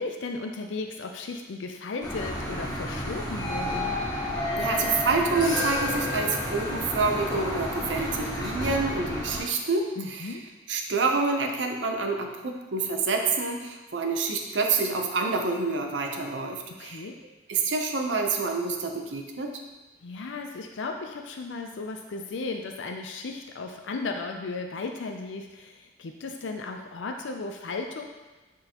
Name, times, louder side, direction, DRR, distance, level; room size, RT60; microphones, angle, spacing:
voice 1, 0.0-4.0 10.0-10.4 16.7-17.2 20.0-28.1, left 3 dB, 75° left, 3 dB, 0.5 m, -35 dB
sound 1, 2.0-9.4, left 1 dB, 25° left, 1.9 m, -30 dB
voice 2, 4.6-10.3 10.7-17.1 17.5-19.5, right 4 dB, 70° right, 3 dB, 0.7 m, -27 dB
8.9 x 3.8 x 2.9 m, 1.2 s
head